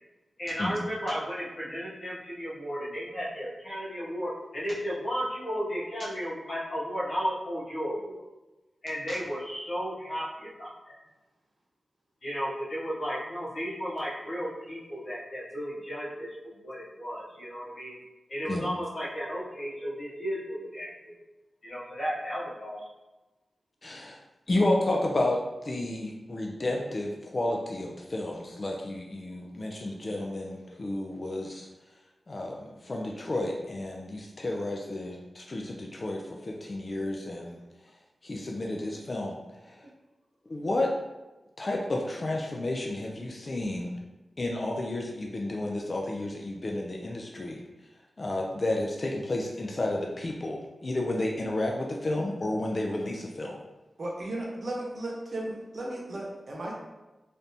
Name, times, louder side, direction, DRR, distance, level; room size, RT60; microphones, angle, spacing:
voice 1, 0.4-8.2 8.8-10.9 12.2-18.0 18.3-21.1 21.6-22.8, equal, 60° left, -8 dB, 1.3 m, -34 dB
voice 2, 23.8-24.2 24.5-31.7 32.3-37.6 38.2-39.9 40.5-40.9 41.6-44.0 44.4-47.6 48.2-53.6, left 1 dB, 45° left, 0 dB, 0.4 m, -31 dB
voice 3, 54.0-56.7, right 1 dB, 60° right, -2 dB, 0.8 m, -35 dB
3.3 x 2.6 x 2.7 m, 1.1 s
cardioid pair, 65°, 0 cm